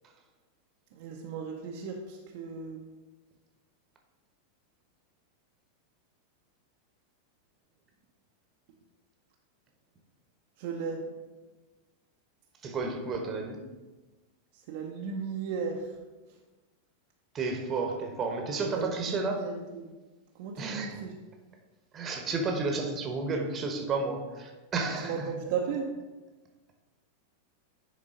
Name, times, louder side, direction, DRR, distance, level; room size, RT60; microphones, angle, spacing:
voice 1, 0.9-2.9 10.6-11.0 14.7-15.8 18.7-19.9 20.4-21.1 25.0-25.9, right 6 dB, 50° right, 0 dB, 0.7 m, -35 dB
voice 2, 12.6-13.6 17.3-19.5 20.6-21.0 21.9-25.3, right 3 dB, 25° right, 3 dB, 1.0 m, -32 dB
9.8 x 3.8 x 3.8 m, 1.2 s
figure-of-eight pair, 90°, 0 cm